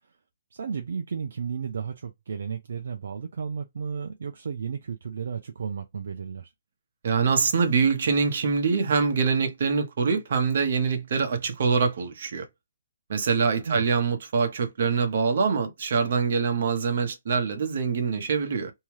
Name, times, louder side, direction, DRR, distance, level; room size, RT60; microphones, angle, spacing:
voice 1, 0.5-6.5 13.7-13.8, right 6 dB, 70° right, 0.5 m, -33 dB
voice 2, 7.0-12.4 13.1-18.7, right 5 dB, 55° right, 0.9 m, -24 dB
2.8 x 2.3 x 3.1 m
hypercardioid pair, 165°, 0 cm